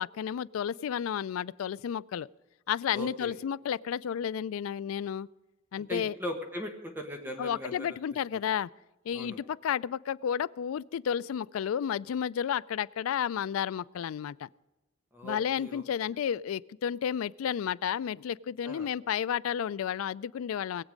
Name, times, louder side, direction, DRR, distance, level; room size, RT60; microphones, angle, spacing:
voice 1, 0.0-2.3 2.7-5.3 5.7-6.2 7.4-8.7 9.1-14.5 15.2-20.8, left 8 dB, 85° left, 20 dB, 0.3 m, -32 dB
voice 2, 2.9-3.3 5.8-7.9 9.1-9.4 15.1-15.8 18.6-18.9, left 1 dB, 10° right, 4 dB, 1.3 m, -39 dB
20.5 x 8.2 x 5.1 m, 1.1 s
head